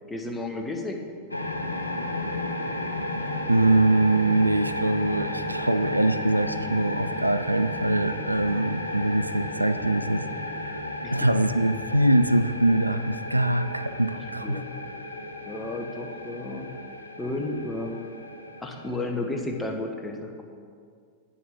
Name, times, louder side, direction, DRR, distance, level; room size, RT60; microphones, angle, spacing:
voice 1, 0.1-1.0 11.0-11.1 14.4-14.7 15.5-16.7 17.2-18.0 18.6-20.4, left 2 dB, 10° left, 2 dB, 1.1 m, -32 dB
sound 1, 1.3-19.6, left 1 dB, 80° left, 0.7 m, -33 dB
voice 2, 3.5-10.3 10.5-10.8 11.1-14.6, right 1 dB, 85° right, 12 dB, 0.3 m, -23 dB
8.7 x 7.1 x 6.0 m, 2.1 s
figure-of-eight pair, 90°, 0 cm